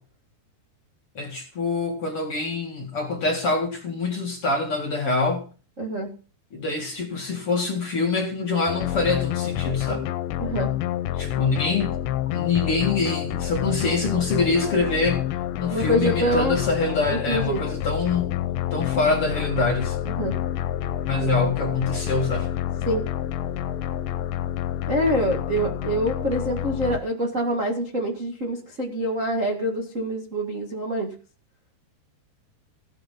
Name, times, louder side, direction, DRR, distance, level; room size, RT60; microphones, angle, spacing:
voice 1, 1.1-5.4 6.5-10.1 11.1-12.0 12.3-15.2 15.6-18.3 18.7-20.0 21.0-22.5, left 3 dB, 45° left, 2.2 m, -25 dB
voice 2, 5.8-6.1 10.4-10.7 15.7-16.6 17.1-17.6 20.0-20.4 22.9-23.1 24.9-31.1, equal, 35° right, 1.3 m, -25 dB
sound 1, 8.7-27.0, left 11 dB, 85° left, 3.1 m, -28 dB
16.5 x 8.5 x 5.4 m
omnidirectional pair, 4.9 m